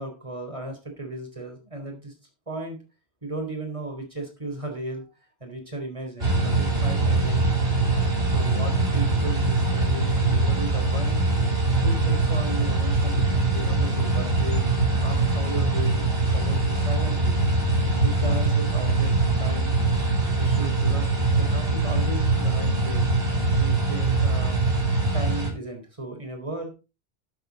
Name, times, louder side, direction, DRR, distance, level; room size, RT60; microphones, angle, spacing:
voice 1, 0.0-2.1 2.5-2.8 3.2-5.1 5.4-7.4 8.3-11.2 11.8-14.6 15.0-17.4 18.0-19.7 20.4-23.1 23.5-24.6 25.1-26.7, right 2 dB, 30° right, 3 dB, 4.0 m, -35 dB
sound 1, 6.2-25.5, right 3 dB, 60° right, 3.9 m, -23 dB
12.5 x 8.0 x 4.1 m, 0.29 s
omnidirectional pair, 1.2 m